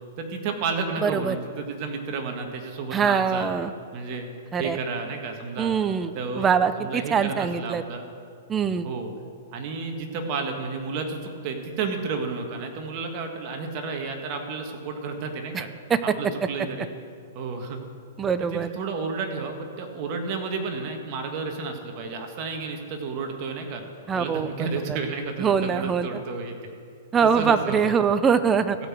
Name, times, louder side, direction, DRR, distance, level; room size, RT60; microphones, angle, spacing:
voice 1, 0.2-3.5 3.9-4.3 4.6-5.7 6.1-6.5 6.7-8.1 8.8-9.1 9.5-15.7 16.0-16.9 17.3-17.8 18.4-23.8 24.1-26.8 27.2-27.9, right 4 dB, 40° right, 4 dB, 1.7 m, -31 dB
voice 2, 1.0-1.4 2.9-3.7 4.5-4.8 5.6-6.1 6.4-7.8 8.5-8.9 15.9-16.0 18.2-18.7 24.1-24.5 25.4-26.1 27.1-28.8, right 6 dB, 20° right, 11 dB, 0.6 m, -23 dB
15.5 x 5.9 x 7.6 m, 2.3 s
hypercardioid pair, 140°, 0 cm